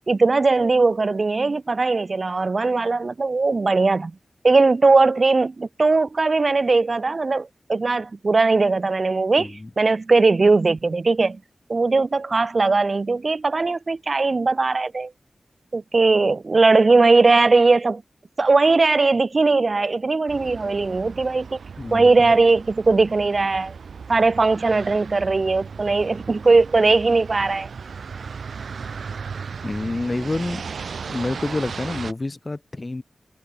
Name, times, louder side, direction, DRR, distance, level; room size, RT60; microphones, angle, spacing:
voice 1, 0.0-4.1 4.4-11.4 11.7-15.1 15.7-18.0 18.4-21.6 21.9-23.7 24.1-27.7, right 3 dB, 50° right, 0.4 m, -19 dB
voice 2, 9.4-9.7 21.8-22.3 29.6-30.7 31.0-33.0, left 2 dB, 35° left, 1.7 m, -28 dB
sound 1, 20.3-32.1, right 5 dB, 85° right, 1.4 m, -36 dB
cardioid pair, 55°, 0 cm